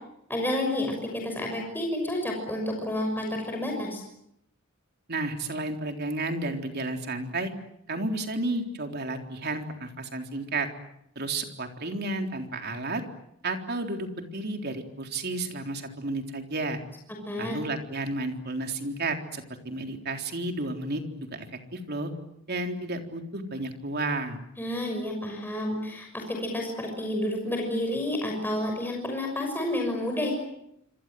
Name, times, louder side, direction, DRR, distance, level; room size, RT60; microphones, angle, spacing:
voice 1, 0.3-4.0 17.2-17.6 24.6-30.3, left 1 dB, 10° left, 1 dB, 6.2 m, -30 dB
voice 2, 5.1-7.5 7.9-10.7 11.2-13.0 13.4-16.8 17.4-21.0 21.3-22.1 22.5-24.4, right 2 dB, 50° right, 4 dB, 3.8 m, -32 dB
27.0 x 26.5 x 7.7 m, 0.78 s
head